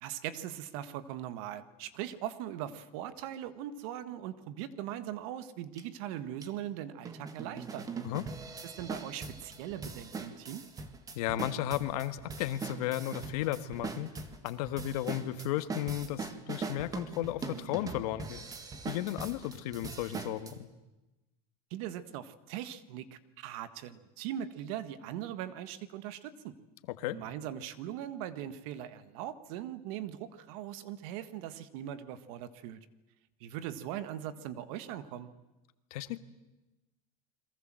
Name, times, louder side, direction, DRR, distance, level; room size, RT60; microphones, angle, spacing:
voice 1, 0.0-7.9 8.6-10.6 21.7-26.6 27.1-32.8 33.4-35.3, right 11 dB, 65° right, 13 dB, 1.7 m, -40 dB
sound 1, 5.8-5.9 6.4-6.5 7.1-20.5, right 4 dB, 20° right, 1.8 m, -41 dB
voice 2, 11.1-14.1 14.4-18.4 18.8-20.7 26.9-27.2 35.9-36.2, left 13 dB, 75° left, 11 dB, 1.7 m, -34 dB
29.5 x 22.5 x 7.7 m, 1.0 s
supercardioid pair, 155°, 20 cm